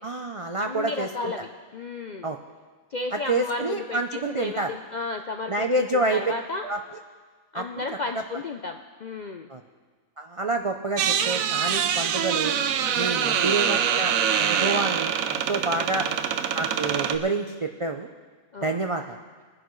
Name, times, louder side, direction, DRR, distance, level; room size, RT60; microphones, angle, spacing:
voice 1, 0.0-1.3 2.2-2.4 3.1-4.7 5.5-6.2 6.6-6.8 7.5-7.6 9.5-9.6 10.2-12.6 12.9-14.1 14.4-16.1 16.5-18.1 18.6-19.2, right 2 dB, 55° right, 4 dB, 0.3 m, -28 dB
voice 2, 0.6-2.3 2.9-6.6 7.5-9.5 13.1-13.6 15.6-16.2 18.5-18.9, left 3 dB, 60° left, 4 dB, 0.4 m, -34 dB
sound 1, 11.0-17.2, right 8 dB, 80° right, 1.1 m, -25 dB
21.5 x 11.0 x 3.2 m, 1.5 s
omnidirectional pair, 1.4 m